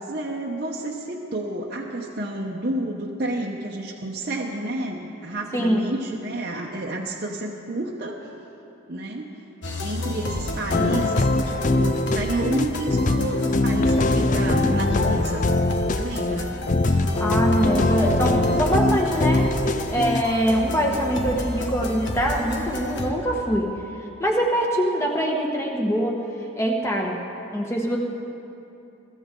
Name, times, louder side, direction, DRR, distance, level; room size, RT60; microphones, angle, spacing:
voice 1, 0.1-8.2 8.9-9.3 9.8-15.6 15.9-16.6, right 1 dB, 45° right, -3 dB, 0.9 m, -30 dB
sound 1, 9.6-23.1, left 1 dB, 60° left, 1.4 m, -31 dB
sound 2, 10.7-20.2, left 2 dB, 40° left, 0.4 m, -22 dB
voice 2, 17.1-23.7 24.2-26.2 26.6-27.2 27.5-28.0, equal, 15° left, -1 dB, 1.5 m, -23 dB
23.0 x 15.0 x 3.8 m, 2.8 s
head